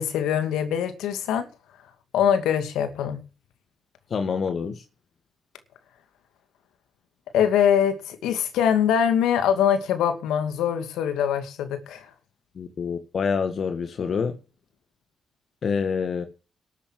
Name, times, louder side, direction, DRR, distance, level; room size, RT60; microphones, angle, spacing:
voice 1, 0.0-1.5 2.1-3.2 7.3-12.1, left 8 dB, 80° left, 2.4 m, -23 dB
voice 2, 4.1-4.8 12.5-14.4 15.6-16.2, left 6 dB, 55° left, 1.7 m, -26 dB
12.5 x 8.3 x 7.6 m
supercardioid pair, 55°, 0 cm